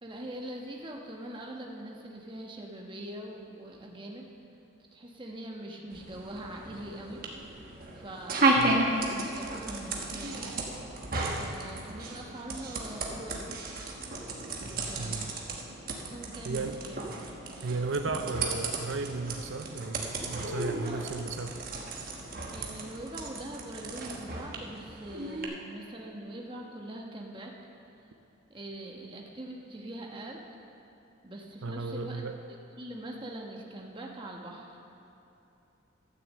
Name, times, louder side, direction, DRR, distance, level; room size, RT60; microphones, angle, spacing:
voice 1, 0.0-4.3 4.9-7.2 7.9-10.5 11.4-13.6 14.9-15.2 16.0-17.1 20.8-21.1 22.5-27.6 28.5-30.4 31.2-32.2 32.5-34.7, right 1 dB, 25° right, 0 dB, 1.1 m, -42 dB
sound 1, 5.9-25.4, right 2 dB, 45° right, 1.2 m, -34 dB
voice 2, 15.0-15.3 16.5-16.8 17.6-21.5 31.6-32.4, right 3 dB, 70° right, 6 dB, 0.5 m, -34 dB
12.0 x 6.8 x 7.6 m, 2.9 s
head